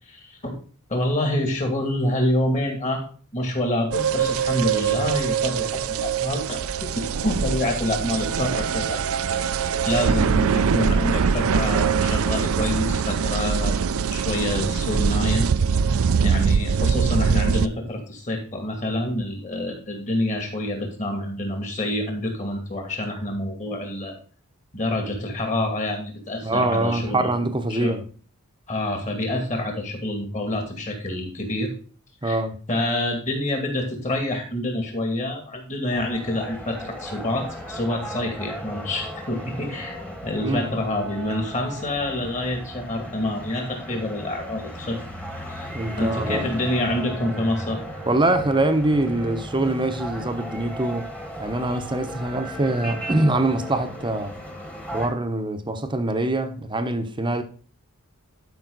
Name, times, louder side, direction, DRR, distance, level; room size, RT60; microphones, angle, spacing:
voice 1, 0.2-0.5 0.9-3.0 3.3-6.6 7.0-9.0 9.3-9.4 9.8-13.8 14.1-15.5 16.2-24.2 24.7-27.3 27.7-28.0 28.7-31.7 32.2-32.4 32.7-45.0 45.5-45.7 46.0-47.8, left 1 dB, 35° left, 2.5 m, -27 dB
sound 1, 3.9-17.7, right 6 dB, 65° right, 0.5 m, -23 dB
voice 2, 26.4-28.0 32.2-32.6 40.4-40.7 45.7-46.5 48.1-51.1 51.4-54.4 54.9-57.4, right 2 dB, 20° right, 0.9 m, -24 dB
sound 2, 35.9-55.1, equal, 5° left, 1.4 m, -36 dB
12.0 x 5.5 x 4.0 m
head